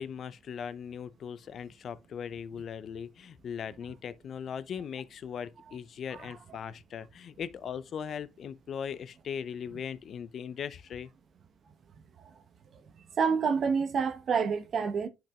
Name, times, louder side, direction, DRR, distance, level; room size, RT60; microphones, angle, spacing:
voice 1, 0.0-11.1, left 7 dB, 55° left, 0.5 m, -39 dB
voice 2, 13.2-15.1, right 6 dB, 50° right, 1.0 m, -28 dB
10.0 x 5.9 x 2.3 m
supercardioid pair, 75°, 0 cm